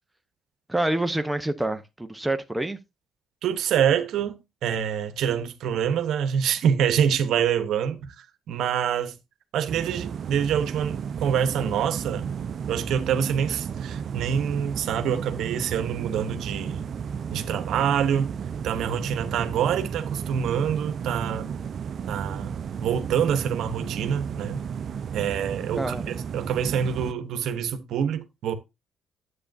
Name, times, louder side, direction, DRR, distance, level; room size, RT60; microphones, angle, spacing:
voice 1, 0.7-2.8 25.7-26.1, right 1 dB, 10° right, 0.9 m, -27 dB
voice 2, 3.4-9.2 9.5-12.3 12.7-16.9 17.3-18.4 18.6-21.5 22.1-24.6 25.1-28.5, right 8 dB, 80° right, 1.0 m, -26 dB
sound 1, 9.7-27.1, right 7 dB, 55° right, 0.6 m, -33 dB
10.0 x 8.2 x 2.7 m
cardioid pair, 90°, 0 cm